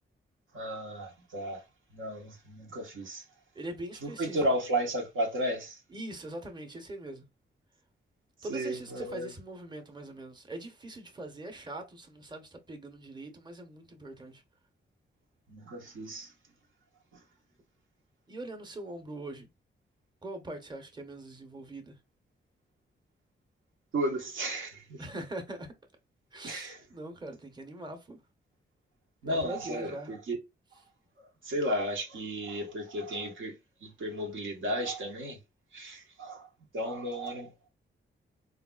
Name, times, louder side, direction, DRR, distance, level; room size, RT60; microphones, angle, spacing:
voice 1, 0.5-1.6 1.9-3.2 4.0-5.8 8.4-9.3 15.5-16.3 17.1-17.2 23.9-25.1 26.4-26.8 29.2-30.4 30.7-30.8 31.2-35.4 35.7-37.7, equal, 70° right, 0.9 m, -34 dB
voice 2, 3.5-4.4 5.9-7.2 8.4-14.4 18.3-19.5 20.2-22.0 25.0-25.7 26.3-28.2 29.2-30.1, right 1 dB, 20° right, 0.9 m, -42 dB
3.3 x 2.4 x 2.3 m
supercardioid pair, 50°, 21 cm